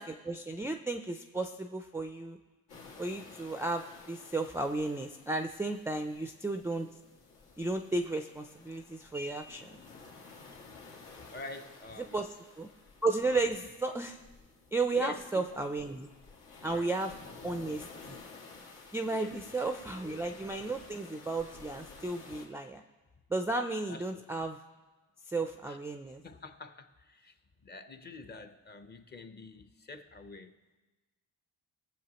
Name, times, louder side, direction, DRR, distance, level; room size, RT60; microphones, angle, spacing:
voice 1, 0.0-2.4 3.0-6.9 7.6-9.8 12.1-12.3 12.6-12.7 13.0-14.2 14.7-16.1 16.6-17.1 17.4-18.2 18.9-22.8 23.3-24.6 25.3-26.2, right 3 dB, 10° right, 5 dB, 0.3 m, -34 dB
sound 1, 2.7-22.5, left 4 dB, 85° left, 2.2 m, -53 dB
voice 2, 11.3-12.2 13.6-13.7 14.9-15.4 16.6-16.9 19.0-19.5 23.9-24.2 25.7-25.8 26.2-30.6, left 3 dB, 30° left, 9 dB, 0.7 m, -46 dB
20.5 x 7.5 x 2.9 m, 1.2 s
cardioid pair, 135°, 35 cm